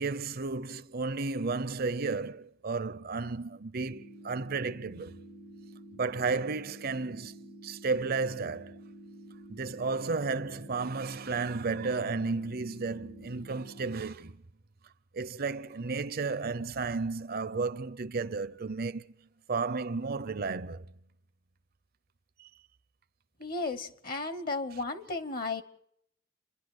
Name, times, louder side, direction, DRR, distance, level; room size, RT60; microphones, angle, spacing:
voice 1, 0.0-5.1 5.9-8.8 9.5-14.4 15.1-19.0 19.5-20.9 22.4-22.5 24.7-24.8, right 4 dB, 50° right, 0.7 m, -33 dB
sound 1, 3.8-13.8, right 1 dB, 90° left, 6.3 m, -50 dB
voice 2, 23.4-25.6, left 3 dB, 50° left, 1.2 m, -34 dB
30.0 x 11.0 x 8.0 m
head